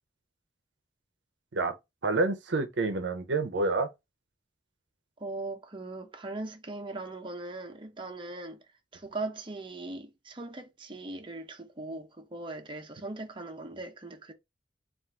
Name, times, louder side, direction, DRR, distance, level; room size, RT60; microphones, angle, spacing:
voice 1, 2.0-3.9, right 3 dB, 75° right, 0.7 m, -28 dB
voice 2, 5.2-8.6 8.9-14.3, right 2 dB, 30° right, 0.7 m, -39 dB
3.7 x 2.5 x 4.4 m
head